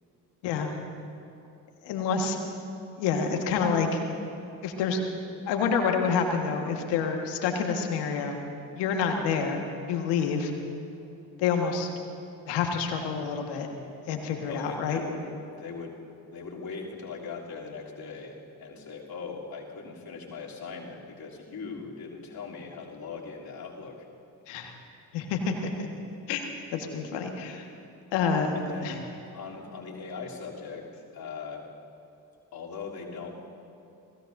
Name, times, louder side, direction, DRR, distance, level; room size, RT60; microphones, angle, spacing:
voice 1, 1.8-2.4 3.0-4.0 4.6-5.1 5.5-8.4 8.8-9.6 9.9-10.5 11.4-11.9 12.5-13.7 14.1-15.1 24.5-24.7 25.1-25.9 26.3-26.4 26.7-27.6 28.1-29.0, left 5 dB, 80° left, 3 dB, 1.7 m, -28 dB
voice 2, 14.5-16.0 16.3-24.1 28.5-29.0 29.3-31.7 32.5-33.4, left 4 dB, 60° left, -3 dB, 3.2 m, -40 dB
29.5 x 17.5 x 2.7 m, 3.0 s
hypercardioid pair, 40°, 42 cm